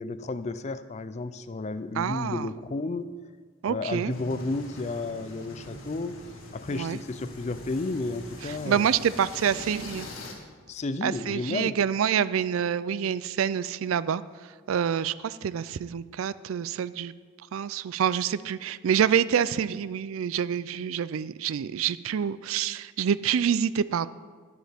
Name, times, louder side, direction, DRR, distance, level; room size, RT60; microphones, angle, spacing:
voice 1, 0.0-3.1 3.7-6.2 6.5-8.9 10.7-11.8, left 3 dB, 35° left, 13 dB, 0.4 m, -32 dB
voice 2, 2.0-2.5 3.6-4.1 6.7-7.0 8.7-10.1 11.0-14.2 14.7-17.1 17.5-24.1, right 8 dB, 80° right, 17 dB, 0.4 m, -27 dB
sound 1, 4.1-10.3, left 2 dB, 85° left, 2.0 m, -43 dB
11.5 x 11.5 x 3.5 m, 1.6 s
head